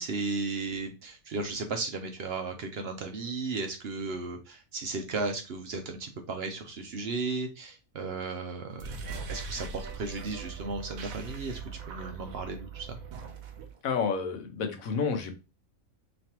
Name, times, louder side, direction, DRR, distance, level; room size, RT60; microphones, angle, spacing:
voice 1, 0.0-11.6 11.9-13.0, right 3 dB, 60° right, 5 dB, 0.7 m, -35 dB
sound 1, 8.7-13.8, right 5 dB, 90° right, 1.1 m, -40 dB
voice 2, 13.8-15.3, left 5 dB, 80° left, 6 dB, 1.2 m, -30 dB
4.0 x 3.2 x 2.9 m, 0.29 s
omnidirectional pair, 1.4 m